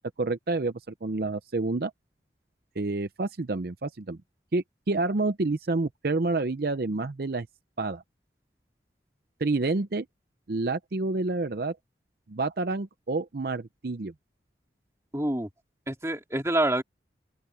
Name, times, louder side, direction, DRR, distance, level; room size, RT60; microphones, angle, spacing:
voice 1, 0.2-0.7 1.0-1.9 2.8-4.2 4.5-7.5 7.8-8.0 9.4-10.1 10.5-11.8 12.3-14.1, right 3 dB, 55° right, 0.6 m, -28 dB
voice 2, 15.1-15.5 15.9-16.8, right 1 dB, 15° right, 2.8 m, -26 dB
open air
head